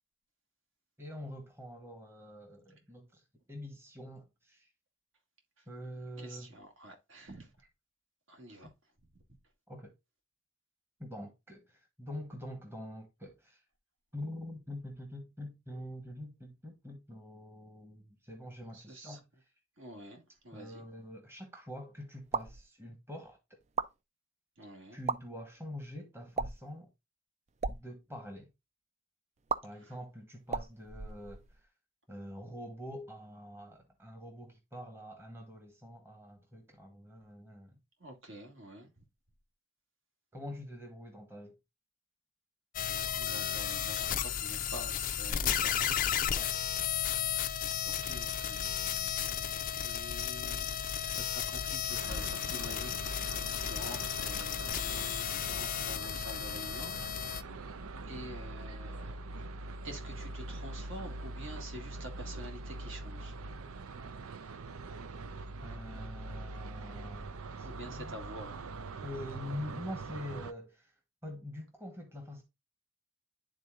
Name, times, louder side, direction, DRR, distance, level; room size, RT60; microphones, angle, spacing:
voice 1, 1.0-3.2 3.5-4.7 5.7-6.5 8.6-8.7 9.7-9.9 11.0-13.6 14.1-19.2 20.5-23.4 24.9-26.9 27.7-28.5 29.6-31.4 32.1-37.8 40.3-41.6 46.3-46.5 65.6-67.7 67.9-68.2 69.0-70.9 71.2-72.4, left 1 dB, 10° right, 1.1 m, -45 dB
voice 2, 6.2-7.5 8.3-8.7 18.7-19.2 19.8-20.9 24.6-25.0 29.8-30.0 38.0-38.9 43.1-46.0 46.7-47.0 47.8-50.8 51.0-57.5 58.1-59.6 59.8-63.4 67.6-68.5, right 1 dB, 65° right, 1.8 m, -48 dB
sound 1, 22.2-22.6 23.6-23.9 24.9-25.2 26.3-26.7 27.5-27.8 29.5-29.6 30.5-31.6, right 5 dB, 30° right, 0.3 m, -35 dB
sound 2, 42.7-57.4, left 9 dB, 40° left, 0.4 m, -34 dB
sound 3, 51.9-70.5, right 2 dB, 85° right, 0.6 m, -43 dB
11.0 x 3.8 x 2.4 m
head